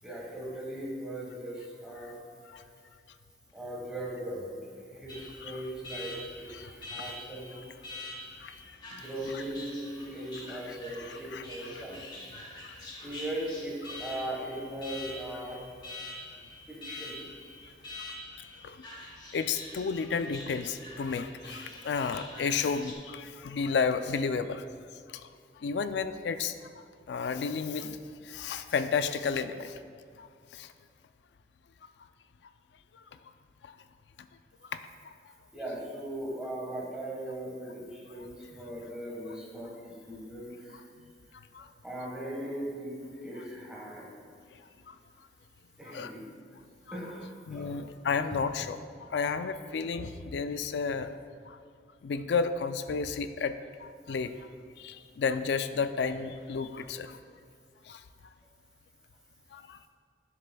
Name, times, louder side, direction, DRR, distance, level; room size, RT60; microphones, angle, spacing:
voice 1, 0.0-2.2 3.5-4.6 4.9-7.6 8.9-12.3 13.0-15.6 16.7-17.2 35.5-40.8 41.8-44.1 45.8-46.3 46.9-47.7, right 1 dB, 5° right, -4 dB, 1.3 m, -39 dB
Alarm, 5.1-22.9, left 1 dB, 25° left, 0.9 m, -45 dB
voice 2, 10.5-11.4 11.7-11.8 12.6-12.7 18.4-18.9 19.3-24.6 25.1-25.3 25.6-29.8 30.2-30.7 32.9-33.0 33.6-33.8 34.7-35.1 41.5-41.7 44.9-45.0 45.9-46.1 47.5-51.1 51.4-51.6 52.0-53.5 53.8-54.5 54.8-57.2 57.8-58.0 59.5-59.9, left 5 dB, 80° left, 11 dB, 0.4 m, -32 dB
9.9 x 7.4 x 2.3 m, 2.2 s
head